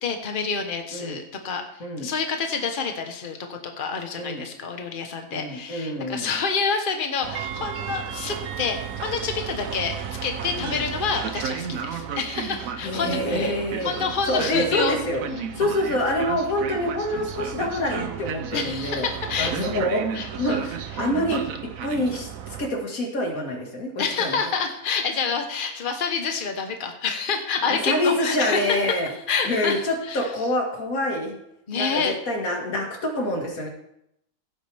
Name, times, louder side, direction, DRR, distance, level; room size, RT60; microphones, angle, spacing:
voice 1, 0.0-10.0 10.2-13.6 13.8-15.0 15.3-15.7 18.5-19.6 20.1-20.6 21.3-21.4 24.0-30.3 31.7-32.1, left 5 dB, 35° left, 4 dB, 1.3 m, -28 dB
voice 2, 5.3-6.4 10.6-10.8 12.8-13.9 14.3-15.2 15.6-19.1 19.4-20.0 20.4-24.4 27.7-29.1 29.4-31.4 31.7-33.7, left 1 dB, 65° left, 1 dB, 2.4 m, -26 dB
Train, 7.2-22.7, right 8 dB, 65° right, 1.1 m, -33 dB
16.0 x 8.4 x 3.5 m, 0.77 s
omnidirectional pair, 1.6 m